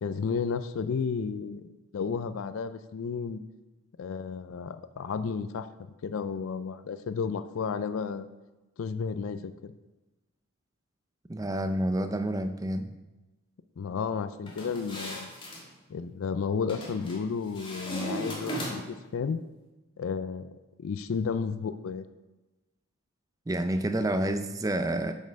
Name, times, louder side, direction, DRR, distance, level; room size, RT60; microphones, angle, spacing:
voice 1, 0.0-3.4 4.0-5.7 6.0-8.3 8.8-9.7 13.8-15.3 15.9-19.4 20.0-22.1, left 5 dB, 80° left, 13 dB, 0.4 m, -32 dB
voice 2, 11.3-12.9 23.5-25.1, right 1 dB, 15° right, 8 dB, 0.5 m, -29 dB
sound 1, 14.5-15.6 16.7-17.2 17.5-19.0, equal, 25° left, 1.5 m, -37 dB
7.6 x 5.4 x 5.1 m, 1.1 s
head